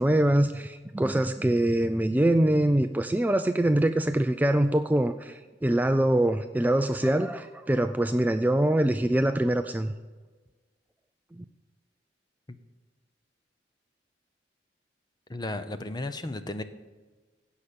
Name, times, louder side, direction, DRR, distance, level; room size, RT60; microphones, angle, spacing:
voice 1, 0.0-9.9 11.4-11.5, right 1 dB, 10° right, 8 dB, 0.3 m, -24 dB
voice 2, 15.3-16.6, left 2 dB, 25° left, 10 dB, 0.7 m, -34 dB
16.5 x 5.7 x 6.8 m, 1.3 s
head